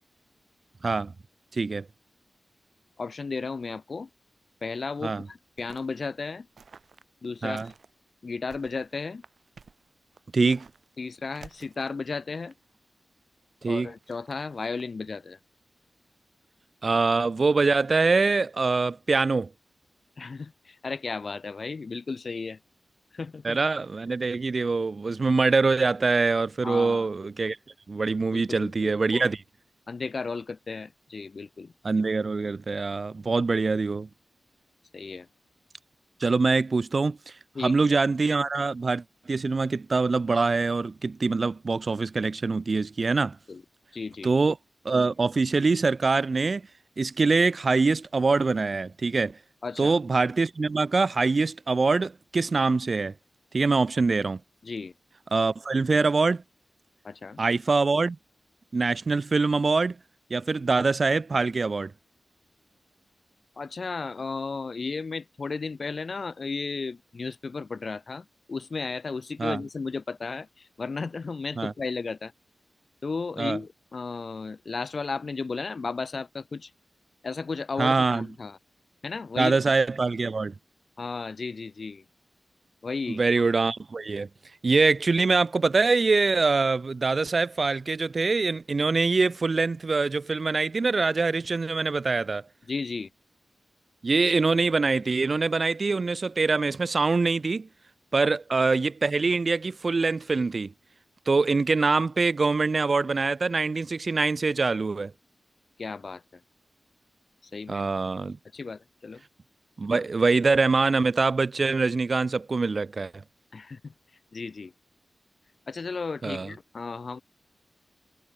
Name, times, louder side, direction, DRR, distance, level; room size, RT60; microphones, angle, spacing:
voice 1, 1.5-1.9 5.0-5.2 7.4-7.7 10.3-10.6 13.6-13.9 16.8-19.5 23.4-27.6 27.9-29.4 31.8-34.1 36.2-37.2 37.6-43.4 44.2-44.5 44.8-46.6 47.0-49.4 49.8-53.1 53.5-54.4 55.3-56.4 57.4-58.2 58.7-60.0 60.3-61.9 69.4-69.6 71.6-71.7 73.4-73.6 77.8-78.3 79.4-80.5 83.1-84.3 84.6-92.4 94.0-97.7 98.1-100.7 101.3-105.1 107.7-108.4 109.8-113.2 116.2-116.5, right 4 dB, 50° right, 0.4 m, -24 dB
voice 2, 3.0-4.1 4.6-6.5 7.2-7.7 8.2-9.2 11.0-12.5 13.7-15.4 20.2-22.6 23.1-23.6 26.6-27.1 28.3-29.3 29.9-31.7 34.9-35.3 37.5-37.7 43.5-43.6 43.9-44.3 49.6-49.9 54.6-54.9 57.0-57.4 63.6-72.3 73.0-76.7 77.2-78.6 79.0-79.7 81.0-82.0 82.8-83.2 92.7-93.1 105.8-106.4 107.5-107.8 108.5-109.2 113.5-113.9 114.3-114.7 115.7-117.2, left 4 dB, 55° left, 1.1 m, -34 dB
sound 1, 5.0-6.0 6.6-7.9 8.3-11.0 11.2-12.8 13.8-14.8, right 5 dB, 70° right, 6.2 m, -53 dB
wide cardioid pair, 75°, 0 cm